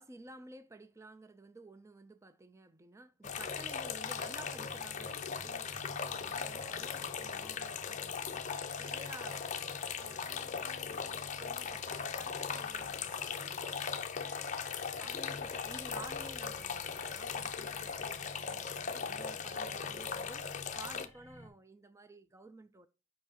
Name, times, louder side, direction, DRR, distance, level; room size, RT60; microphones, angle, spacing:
voice 1, 0.0-8.5 8.8-9.7 10.0-13.8 14.9-22.9, right 2 dB, 15° right, 0.4 m, -53 dB
sound 1, 3.2-21.1, left 6 dB, 35° left, 0.6 m, -39 dB
sound 2, 4.1-11.2 11.5-11.8 12.1-12.3, right 3 dB, 35° right, 0.9 m, -60 dB
sound 3, 6.4-21.5, left 2 dB, 5° left, 1.0 m, -59 dB
6.9 x 5.3 x 2.8 m
head